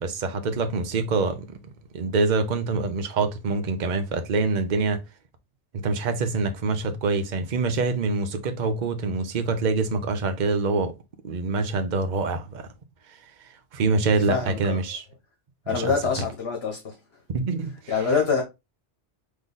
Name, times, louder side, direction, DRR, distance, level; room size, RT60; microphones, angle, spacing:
voice 1, 0.0-5.0 5.7-10.9 11.2-12.7 13.7-15.0 15.7-15.9 17.3-17.7, right 3 dB, 45° right, 0.8 m, -25 dB
voice 2, 14.2-14.8 15.7-17.2 17.9-18.4, left 5 dB, 65° left, 1.4 m, -26 dB
3.9 x 3.2 x 3.7 m
omnidirectional pair, 1.2 m